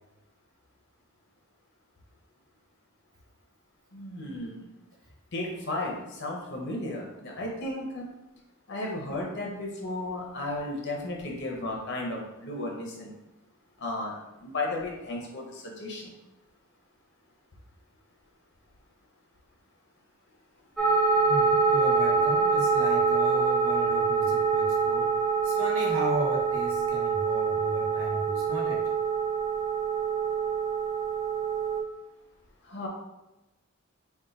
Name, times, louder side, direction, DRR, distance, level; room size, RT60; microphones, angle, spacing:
voice 1, 3.9-4.7 5.3-8.1 8.7-13.1 13.8-14.1 14.4-16.1 32.6-32.9, left 2 dB, 55° left, -1 dB, 0.9 m, -34 dB
sound 1, 20.8-31.8, right 5 dB, ahead, 1.0 m, -25 dB
voice 2, 21.3-28.9, right 1 dB, 65° right, -2 dB, 0.9 m, -35 dB
3.6 x 2.3 x 3.9 m, 0.99 s
head